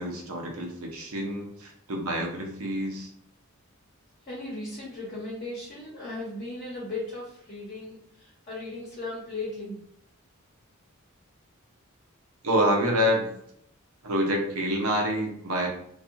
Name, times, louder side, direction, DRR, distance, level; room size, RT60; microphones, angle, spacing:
voice 1, 0.0-3.1 12.4-13.3 14.0-15.7, equal, 80° right, 1 dB, 0.7 m, -27 dB
voice 2, 4.3-9.8, left 2 dB, 40° left, -6 dB, 0.9 m, -37 dB
2.7 x 2.3 x 2.4 m, 0.71 s
head